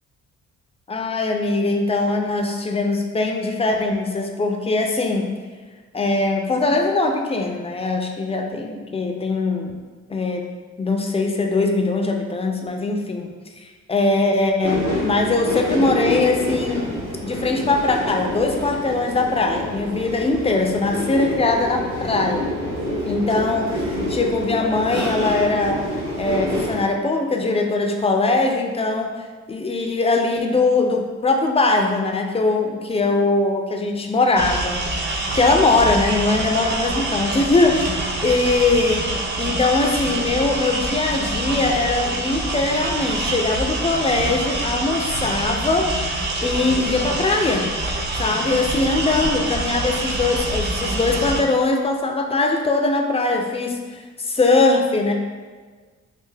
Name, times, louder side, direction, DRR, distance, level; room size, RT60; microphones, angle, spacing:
voice 1, 0.9-5.3 5.9-9.7 10.1-10.5 10.8-13.3 13.9-16.9 17.2-22.4 23.1-25.8 26.2-29.1 29.5-34.8 35.3-37.9 38.2-39.1 39.4-45.9 46.4-47.7 48.1-55.1, left 3 dB, 20° left, 2 dB, 0.4 m, -21 dB
sound 1, 14.6-26.8, left 1 dB, 60° right, 1.4 m, -27 dB
sound 2, 34.4-51.4, right 2 dB, 35° right, 0.6 m, -26 dB
3.4 x 2.5 x 3.3 m, 1.5 s
cardioid pair, 90°, 30 cm